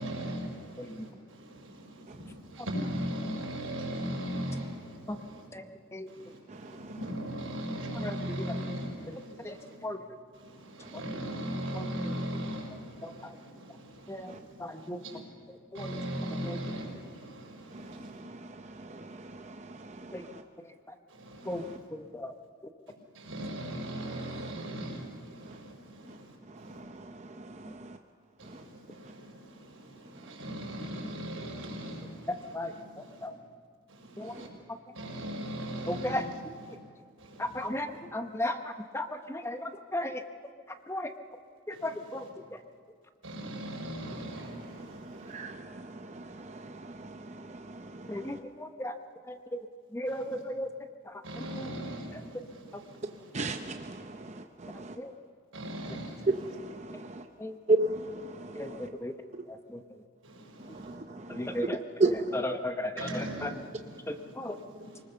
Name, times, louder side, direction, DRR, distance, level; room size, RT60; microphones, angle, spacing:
voice 1, 0.0-5.5 6.1-9.8 10.3-15.2 15.7-18.2 21.1-21.9 23.1-26.8 28.4-33.3 33.9-34.5 34.9-36.3 36.7-36.8 37.2-37.7 41.7-41.9 42.2-42.3 43.2-45.4 50.1-50.4 51.2-53.6 55.5-56.3 60.2-60.9 63.0-65.0, equal, 90° right, 5.8 m, -39 dB
voice 2, 6.5-6.9 10.8-10.9 14.3-14.4 17.7-20.4 26.7-28.0 28.5-28.6 34.3-34.5 44.5-48.4 53.3-55.0 56.3-57.2 57.7-58.9 60.7-61.6 62.0-62.4, right 2 dB, 35° right, 0.7 m, -35 dB
voice 3, 8.0-8.5 9.1-9.6 9.8-10.0 11.7-12.1 13.0-13.4 14.1-14.3 14.6-15.0 15.5-16.0 16.4-16.6 20.1-20.2 21.5-21.6 21.9-22.3 32.5-32.7 33.2-33.3 34.2-34.3 35.9-36.2 37.4-40.2 40.9-41.1 41.7-42.2 48.1-48.9 49.2-49.7 49.9-50.7 51.0-51.2 51.5-51.7 52.1-52.5 55.0-55.1 57.4-57.6 58.5-59.1 59.5-59.8 61.3-61.8 62.3-63.5 64.1-64.6, left 1 dB, 15° left, 0.8 m, -36 dB
24.5 x 19.5 x 6.8 m
head